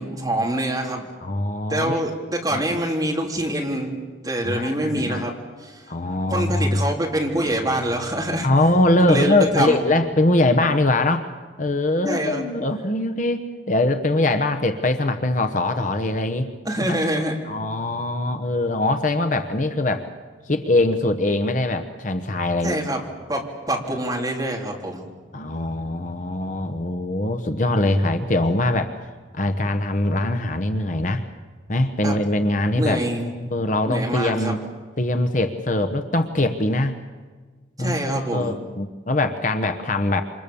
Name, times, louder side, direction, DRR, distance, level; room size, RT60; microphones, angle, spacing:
voice 1, 0.0-1.1 1.7-3.9 4.2-5.8 6.3-8.5 9.1-9.8 12.0-12.4 16.7-17.4 22.6-23.0 23.3-25.0 32.0-32.2 32.7-33.5 33.9-34.6 37.8-38.5, right 1 dB, 20° right, -1 dB, 3.5 m, -25 dB
voice 2, 1.2-2.0 2.5-2.6 4.4-5.3 5.9-6.8 8.4-11.3 11.6-16.5 16.9-17.0 17.4-20.1 20.5-22.8 25.3-28.9 29.3-31.2 31.7-34.6 35.0-37.0 37.8-40.2, left 2 dB, 40° left, 7 dB, 1.1 m, -22 dB
sound 1, 7.4-10.6, equal, 10° left, 4.5 m, -42 dB
28.0 x 25.5 x 7.1 m, 1.4 s
head